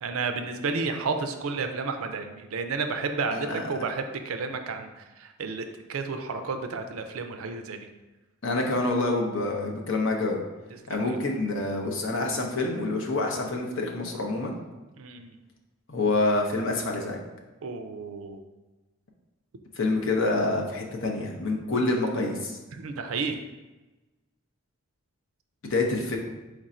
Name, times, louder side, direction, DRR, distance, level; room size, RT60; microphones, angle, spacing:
voice 1, 0.0-7.9 10.9-11.4 15.0-15.4 17.6-18.4 22.7-23.4, right 4 dB, 80° right, 7 dB, 0.4 m, -32 dB
voice 2, 3.3-3.6 8.4-10.4 10.9-14.5 15.9-17.2 19.8-22.6 25.6-26.2, left 2 dB, 60° left, 0 dB, 0.7 m, -27 dB
4.5 x 2.5 x 4.2 m, 1.1 s
head